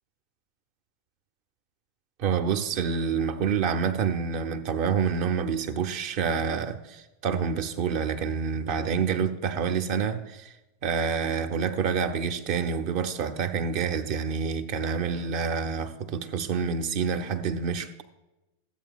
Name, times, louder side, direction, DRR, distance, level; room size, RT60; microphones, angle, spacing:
voice 1, 2.2-10.5 10.8-17.9, right 6 dB, 45° right, 10 dB, 0.8 m, -27 dB
15.0 x 8.2 x 2.4 m, 0.99 s
figure-of-eight pair, 90°, 0 cm